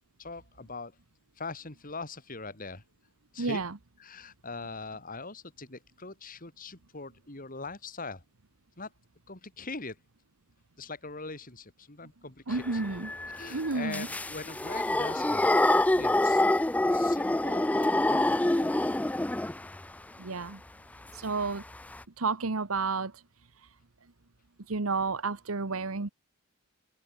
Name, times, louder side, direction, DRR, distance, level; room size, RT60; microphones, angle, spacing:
voice 1, 0.2-1.0 1.4-2.8 3.3-3.6 4.0-8.2 8.8-8.9 9.3-10.0 10.8-12.8 13.3-16.4 16.9-18.7, left 3 dB, 40° left, 3.2 m, -42 dB
voice 2, 3.4-3.7 12.5-13.1 13.5-14.1 20.2-20.6 21.1-21.6 22.2-23.2 23.6-23.7 24.7-26.1, right 4 dB, 85° right, 1.2 m, -31 dB
sound 1, 12.5-19.8 21.4-21.5 21.7-22.0, left 1 dB, 5° left, 0.3 m, -26 dB
open air
head